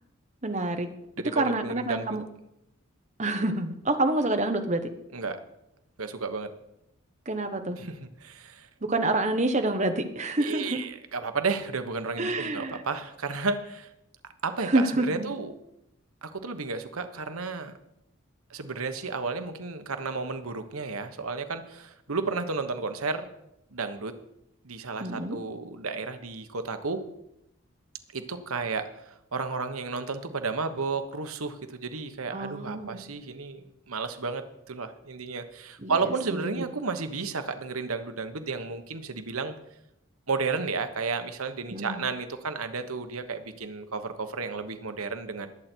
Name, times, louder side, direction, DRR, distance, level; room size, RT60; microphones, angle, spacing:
voice 1, 0.4-0.9 1.3-2.2 3.2-4.9 7.3-7.8 8.8-10.8 12.2-12.8 14.6-15.3 25.0-25.4 32.3-33.0 35.8-36.6 41.7-42.0, right 2 dB, 35° right, 6 dB, 1.1 m, -27 dB
voice 2, 1.2-2.1 5.1-5.4 6.0-6.5 7.8-8.7 10.4-13.9 14.4-15.5 16.2-17.7 18.5-23.3 23.7-24.1 24.6-27.0 28.1-39.5 40.3-45.5, right 4 dB, 90° right, 8 dB, 1.2 m, -32 dB
20.5 x 8.2 x 4.5 m, 0.85 s
head